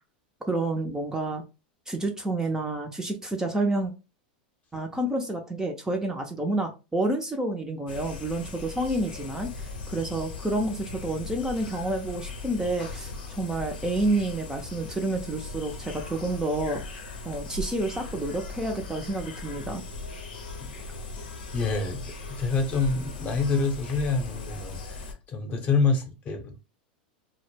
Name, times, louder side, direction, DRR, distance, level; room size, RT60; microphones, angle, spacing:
voice 1, 0.5-1.4 1.9-3.9 4.7-16.8 17.2-19.8, right 2 dB, 10° right, 0.4 m, -29 dB
sound 1, 7.9-25.1, left 3 dB, 85° left, 0.7 m, -39 dB
voice 2, 21.5-25.0 25.3-26.6, left 4 dB, 30° left, 0.7 m, -27 dB
2.1 x 2.0 x 3.1 m
hypercardioid pair, 105°, 5 cm